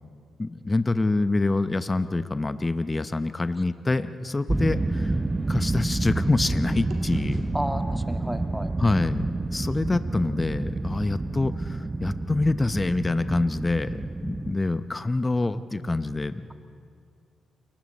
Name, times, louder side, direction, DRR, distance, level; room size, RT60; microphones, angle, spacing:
voice 1, 0.4-5.2 5.5-7.4 8.8-16.5, left 2 dB, 25° left, 12 dB, 0.8 m, -26 dB
sound 1, 4.2-6.5 6.9-11.1, right 2 dB, 60° right, 2.8 m, -46 dB
sound 2, 4.5-14.5, right 2 dB, 25° right, 0.7 m, -29 dB
voice 2, 7.5-8.7, equal, 5° right, 7 dB, 1.8 m, -32 dB
29.5 x 22.5 x 4.2 m, 2.3 s
hypercardioid pair, 40°, 0 cm